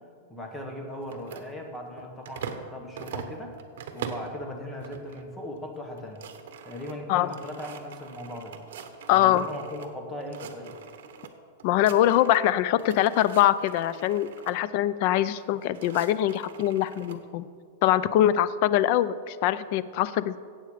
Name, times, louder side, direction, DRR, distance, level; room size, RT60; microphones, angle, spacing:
voice 1, 0.3-3.6 3.9-6.2 6.6-8.5 9.1-10.8, left 1 dB, 10° left, 1 dB, 1.5 m, -38 dB
sound 1, 1.0-2.7 3.0-4.4 4.8-5.2 5.6-5.7 5.9-9.9 10.2-11.3 11.6-12.5 12.8-14.6 15.4-17.2, right 7 dB, 70° right, 1.1 m, -42 dB
voice 2, 9.1-9.4 11.6-17.5 17.8-20.4, left 12 dB, 45° left, 16 dB, 0.5 m, -23 dB
16.0 x 8.0 x 5.0 m, 2.1 s
supercardioid pair, 160°, 0 cm